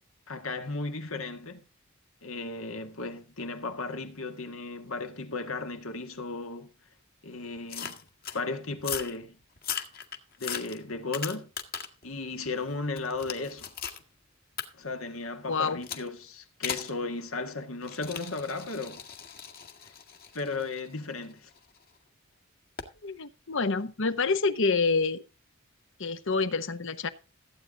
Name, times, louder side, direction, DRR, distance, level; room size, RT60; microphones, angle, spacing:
voice 1, 0.3-1.6 2.2-6.7 7.2-8.0 8.3-9.4 10.4-11.5 12.0-13.7 14.7-19.0 20.3-21.5, left 3 dB, 80° left, 1.9 m, -35 dB
sound 1, 7.7-8.4 8.8-9.2 9.6-12.0 12.4-14.0 14.6-14.7 15.8-16.1 16.6-16.9 17.8-21.8 22.8-23.0, left 8 dB, 50° left, 1.8 m, -38 dB
voice 2, 15.5-15.8 23.0-25.2 26.0-27.1, left 4 dB, 65° left, 1.0 m, -27 dB
15.5 x 8.8 x 3.8 m
head